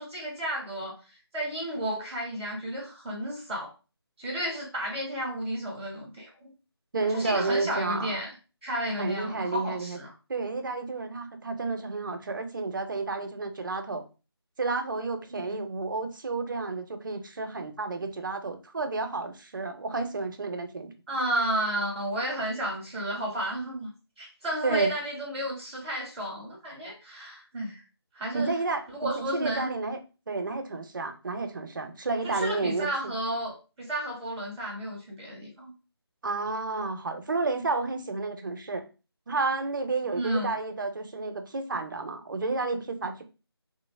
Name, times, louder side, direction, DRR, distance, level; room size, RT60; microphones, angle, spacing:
voice 1, 0.0-3.7 4.2-6.5 7.1-8.3 8.6-10.1 15.3-15.6 21.1-23.9 24.2-27.8 28.1-28.6 28.9-29.7 32.1-35.7 40.1-40.5, right 1 dB, ahead, -23 dB, 0.3 m, -32 dB
voice 2, 6.9-8.2 9.0-10.0 10.3-14.0 14.6-20.9 24.6-24.9 28.3-30.0 30.3-33.1 36.2-38.8 39.3-43.2, right 3 dB, 50° right, 7 dB, 0.5 m, -31 dB
3.1 x 2.0 x 3.2 m, 0.32 s
figure-of-eight pair, 160°, 14 cm